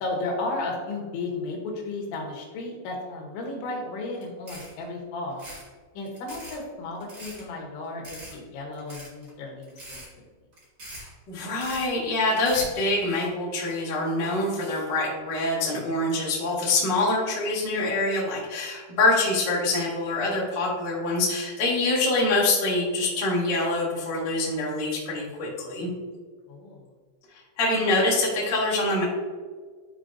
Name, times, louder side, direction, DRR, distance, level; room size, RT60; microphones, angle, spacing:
voice 1, 0.0-5.5 5.9-10.0 26.5-26.8, left 2 dB, 75° left, 0 dB, 3.4 m, -34 dB
sound 1, 4.1-4.2 4.5-4.8 5.3-5.7 6.0-6.6 7.0-7.4 8.0-8.4 8.7-9.3 9.6-10.1 10.5-11.1 11.4-11.8 12.3-12.8, right 1 dB, 70° right, 0.9 m, -42 dB
voice 2, 10.9-25.9 27.6-29.0, left 2 dB, 55° left, -6 dB, 1.2 m, -25 dB
11.5 x 4.3 x 2.6 m, 1.5 s
omnidirectional pair, 5.5 m